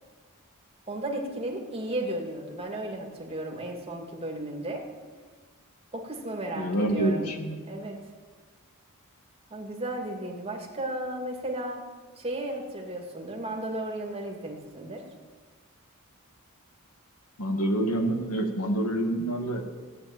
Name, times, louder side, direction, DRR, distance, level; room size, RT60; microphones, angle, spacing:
voice 1, 0.9-4.8 5.9-7.3 7.6-8.0 9.5-11.8 12.2-15.0, right 1 dB, 25° right, 1 dB, 2.5 m, -34 dB
voice 2, 6.6-7.6 17.4-19.7, right 1 dB, 85° left, 4 dB, 2.1 m, -27 dB
16.0 x 8.8 x 9.1 m, 1.5 s
head